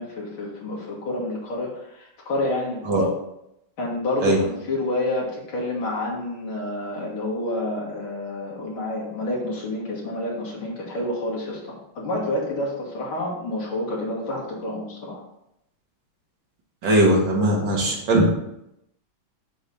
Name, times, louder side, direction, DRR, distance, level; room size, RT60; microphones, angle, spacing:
voice 1, 0.0-3.1 3.8-15.2, left 1 dB, 70° left, -4 dB, 2.5 m, -29 dB
voice 2, 16.8-18.3, right 1 dB, 65° right, -1 dB, 2.0 m, -19 dB
6.9 x 3.2 x 5.4 m, 0.82 s
omnidirectional pair, 2.3 m